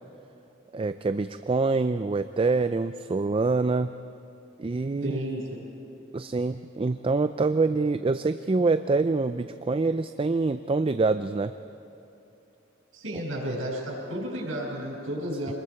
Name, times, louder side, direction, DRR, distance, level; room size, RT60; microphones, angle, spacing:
voice 1, 0.7-3.9 4.6-5.2 6.1-11.5 15.5-15.6, right 3 dB, 25° right, 10 dB, 0.4 m, -25 dB
voice 2, 5.0-5.6 12.9-15.5, equal, 85° right, -1 dB, 6.2 m, -32 dB
26.5 x 21.0 x 4.8 m, 2.9 s
head